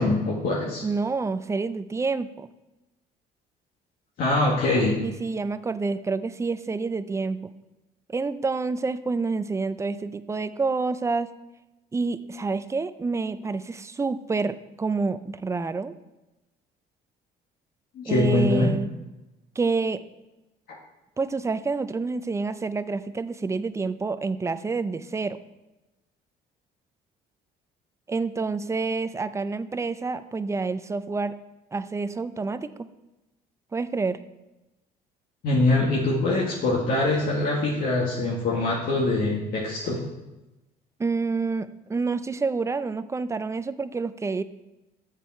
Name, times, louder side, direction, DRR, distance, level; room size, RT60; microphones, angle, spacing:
voice 1, 0.0-0.8 4.2-5.0 17.9-18.7 35.4-40.0, left 2 dB, 60° left, -3 dB, 1.6 m, -23 dB
voice 2, 0.8-2.5 5.0-7.5 8.1-11.3 11.9-15.9 18.0-18.9 19.6-20.0 21.2-25.4 28.1-31.4 31.7-32.7 33.7-34.2 41.0-44.4, right 4 dB, 15° right, 13 dB, 0.4 m, -28 dB
8.3 x 6.9 x 4.4 m, 1.0 s
cardioid pair, 110°, 17 cm